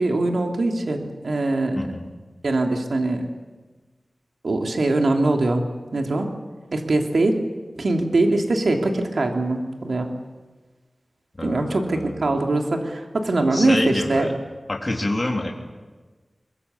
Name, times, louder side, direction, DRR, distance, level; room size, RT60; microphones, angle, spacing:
voice 1, 0.0-1.8 2.4-3.3 4.4-5.6 5.9-6.3 6.7-7.5 7.8-10.1 11.4-14.3, right 2 dB, 75° right, 3 dB, 3.1 m, -22 dB
voice 2, 1.7-2.0 11.4-12.3 13.5-14.3 14.7-15.5, left 2 dB, 35° left, 0 dB, 3.5 m, -27 dB
24.0 x 22.5 x 8.4 m, 1.3 s
wide cardioid pair, 80°, 0 cm